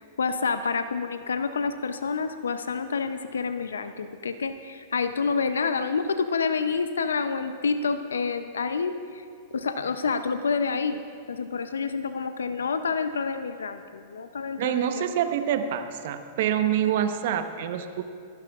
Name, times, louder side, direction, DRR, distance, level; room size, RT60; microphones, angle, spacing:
voice 1, 0.0-8.9 9.5-11.0 11.3-15.1, left 5 dB, 85° left, 10 dB, 0.5 m, -28 dB
voice 2, 14.6-18.0, right 9 dB, 60° right, 8 dB, 0.9 m, -26 dB
24.5 x 12.0 x 2.4 m, 2.3 s
hypercardioid pair, 110°, 0 cm